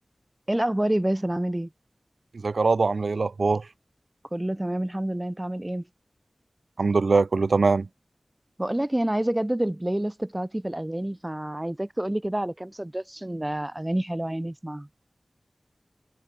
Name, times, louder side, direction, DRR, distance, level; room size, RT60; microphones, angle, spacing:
voice 1, 0.5-1.7 4.3-5.8 8.6-14.9, right 1 dB, 20° right, 1.3 m, -28 dB
voice 2, 2.4-3.6 6.8-7.9, right 4 dB, 80° right, 2.0 m, -22 dB
wide cardioid pair, 60°, 0 cm